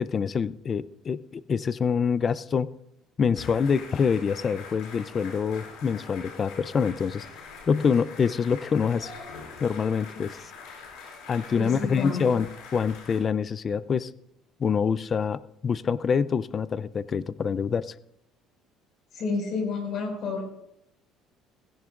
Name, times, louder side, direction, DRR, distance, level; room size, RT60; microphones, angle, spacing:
voice 1, 0.0-2.7 3.2-7.3 7.7-9.1 9.6-10.4 11.3-12.5 12.7-14.1 14.6-17.9, left 6 dB, 35° left, 17 dB, 0.4 m, -26 dB
sound 1, 3.3-13.2, left 5 dB, 85° left, 5.6 m, -44 dB
voice 2, 11.5-12.2 19.1-20.4, left 3 dB, 55° left, 2 dB, 5.0 m, -30 dB
17.0 x 15.5 x 2.5 m, 0.78 s
cardioid pair, 130°, 0 cm